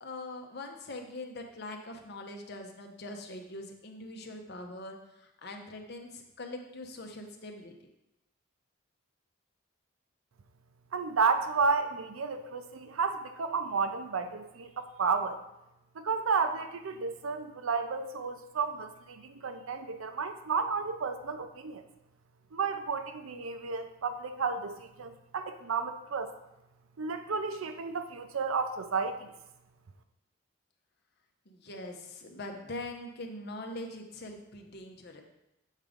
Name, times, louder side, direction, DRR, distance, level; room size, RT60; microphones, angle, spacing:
voice 1, 0.0-7.7 31.5-35.2, left 2 dB, 50° left, 4 dB, 0.8 m, -42 dB
voice 2, 10.9-15.4 16.0-21.8 22.5-26.3 27.0-29.3, right 5 dB, 75° right, 9 dB, 0.5 m, -32 dB
7.3 x 3.7 x 5.1 m, 0.91 s
head